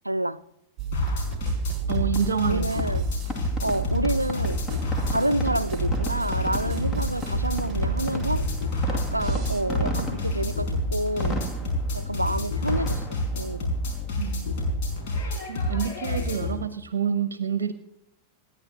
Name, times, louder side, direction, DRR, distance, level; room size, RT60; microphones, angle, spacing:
voice 1, 0.0-0.4 2.4-3.1 3.6-4.7 5.1-8.5 8.9-11.4 11.9-13.7, right 1 dB, 85° right, 0.4 m, -28 dB
sound 1, 0.8-9.6, right 7 dB, 30° right, 1.3 m, -34 dB
sound 2, 0.9-16.5, left 1 dB, 50° left, 5.1 m, -28 dB
Fireworks, 1.8-15.4, left 1 dB, 20° left, 2.4 m, -36 dB
voice 2, 1.9-2.8 6.9-7.2 14.2-14.6 15.5-17.7, right 7 dB, 65° right, 0.8 m, -28 dB
27.0 x 10.5 x 2.9 m
figure-of-eight pair, 90°, 0 cm